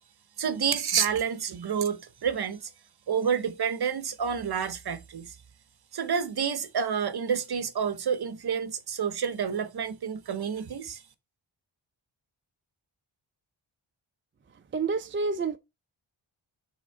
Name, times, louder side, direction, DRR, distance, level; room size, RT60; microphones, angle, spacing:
voice 1, 0.4-2.6 3.1-5.3 5.9-11.0, right 7 dB, 50° right, 0.9 m, -29 dB
voice 2, 14.7-15.6, right 4 dB, 25° right, 0.4 m, -28 dB
6.1 x 3.5 x 4.4 m
wide cardioid pair, 150°, 49 cm